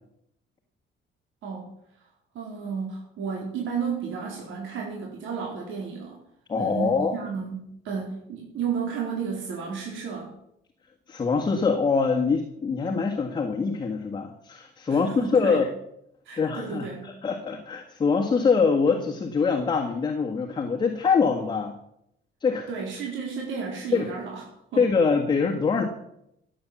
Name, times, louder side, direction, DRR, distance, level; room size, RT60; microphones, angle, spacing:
voice 1, 2.3-6.2 6.6-10.3 14.9-15.6 16.2-17.1 22.7-24.4 24.7-24.8, right 6 dB, 70° right, -2 dB, 4.2 m, -32 dB
voice 2, 6.5-7.2 11.1-15.7 16.4-21.7 22.4-22.7 23.9-24.1 24.8-25.8, left 5 dB, 20° left, 1 dB, 1.6 m, -24 dB
16.0 x 9.0 x 7.3 m, 0.77 s
cardioid pair, 160°, 21 cm